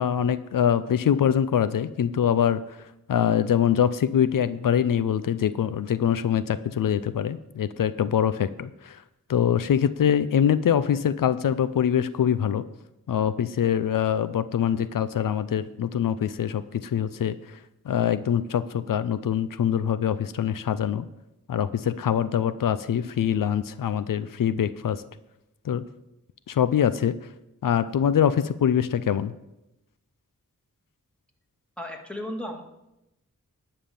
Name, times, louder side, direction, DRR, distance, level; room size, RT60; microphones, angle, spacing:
voice 1, 0.0-2.6 3.1-9.0 9.3-12.6 13.1-17.3 17.9-21.1 21.5-25.0 25.7-25.8 26.5-27.2 27.6-29.3, left 9 dB, 85° left, 14 dB, 0.5 m, -24 dB
voice 2, 31.8-32.6, left 1 dB, 5° left, 2 dB, 1.9 m, -34 dB
11.0 x 5.6 x 7.0 m, 0.90 s
wide cardioid pair, 55°, 32 cm